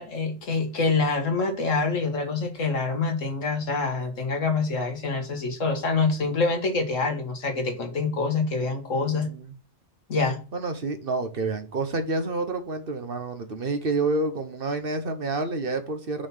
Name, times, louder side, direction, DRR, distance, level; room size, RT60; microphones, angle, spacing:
voice 1, 0.0-9.3 10.1-10.4, left 4 dB, 80° left, 2.0 m, -26 dB
voice 2, 8.9-9.5 10.5-16.3, right 3 dB, 50° right, 1.2 m, -29 dB
6.4 x 4.3 x 5.5 m
omnidirectional pair, 1.3 m